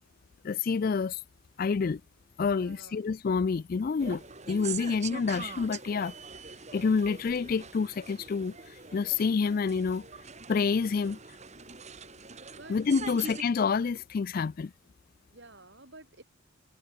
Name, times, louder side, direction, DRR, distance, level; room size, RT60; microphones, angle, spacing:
voice 1, 0.4-1.2 1.6-2.0 2.4-6.1 6.7-10.1 10.5-11.2 12.7-14.7, left 5 dB, 40° left, 0.3 m, -28 dB
voice 2, 2.6-3.0 4.9-5.0 10.9-11.1 12.6-13.4 15.3-16.2, right 2 dB, 50° right, 6.2 m, -52 dB
sound 1, 4.0-13.4, right 5 dB, 30° right, 2.3 m, -43 dB
head